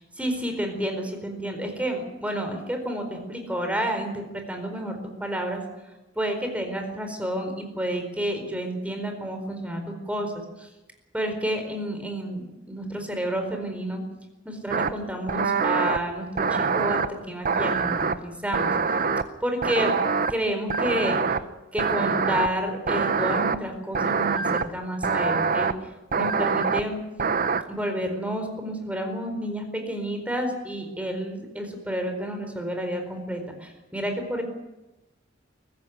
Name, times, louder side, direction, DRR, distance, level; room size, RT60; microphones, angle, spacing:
voice 1, 0.2-5.6 6.1-10.7 11.1-14.0 14.4-18.7 19.4-19.9 20.3-21.2 21.7-25.7 26.1-27.0 27.7-34.4, equal, 5° right, 5 dB, 4.4 m, -30 dB
sound 1, 14.7-14.9 15.3-16.0 16.4-17.1 17.4-18.1 18.5-19.2 19.6-20.3 20.7-21.4 21.8-22.5 22.9-23.6 23.9-24.6 25.0-25.7 26.1-26.8 27.2-27.6, right 5 dB, 45° right, 1.0 m, -24 dB
23.0 x 15.5 x 9.6 m, 1.0 s
head